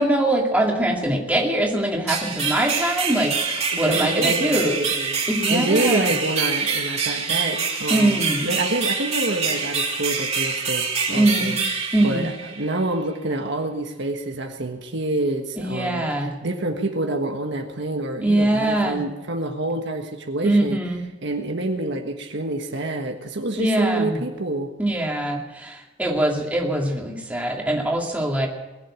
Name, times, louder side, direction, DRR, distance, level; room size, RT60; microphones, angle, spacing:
voice 1, 0.0-4.8 5.3-6.1 7.9-8.5 11.1-11.5 11.9-12.3 15.6-16.4 18.2-19.0 20.4-21.0 23.6-24.2 24.8-28.5, right 1 dB, 10° right, -1 dB, 2.4 m, -22 dB
sound 1, 2.1-12.8, right 5 dB, 35° right, 3.0 m, -25 dB
voice 2, 3.7-5.2 5.5-16.0 16.4-20.8 21.2-24.7, right 2 dB, 60° right, 3 dB, 1.5 m, -27 dB
21.0 x 7.7 x 8.8 m, 1.1 s
head